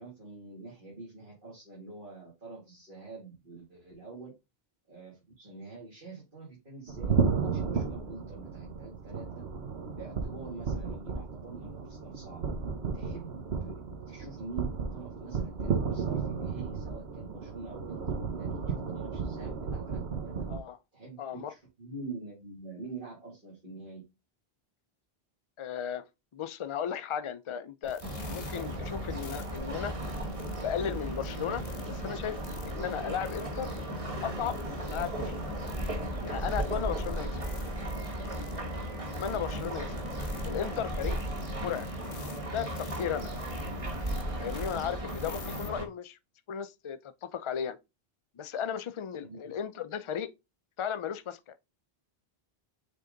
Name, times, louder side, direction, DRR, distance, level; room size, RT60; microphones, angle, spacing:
voice 1, 0.0-4.3 4.9-9.4 9.9-12.4 12.9-20.3 20.9-24.0 37.0-37.2 39.3-39.7 45.6-45.8 49.2-49.5, right 3 dB, 55° right, 2.7 m, -46 dB
sound 1, 6.9-20.6, right 5 dB, 85° right, 1.3 m, -33 dB
voice 2, 21.2-21.5 25.6-26.0 26.3-28.0 28.3-29.9 30.6-32.4 32.7-33.7 34.2-35.5 36.2-37.3 39.1-39.9 40.4-41.2 41.6-41.9 42.5-43.3 44.4-46.2 46.5-47.8 48.4-50.3 50.8-51.5, left 8 dB, 45° left, 0.4 m, -35 dB
sound 2, 27.8-45.7, left 6 dB, 70° left, 1.0 m, -51 dB
sound 3, 28.0-45.8, right 1 dB, 35° right, 1.2 m, -35 dB
6.6 x 3.7 x 3.9 m
omnidirectional pair, 1.0 m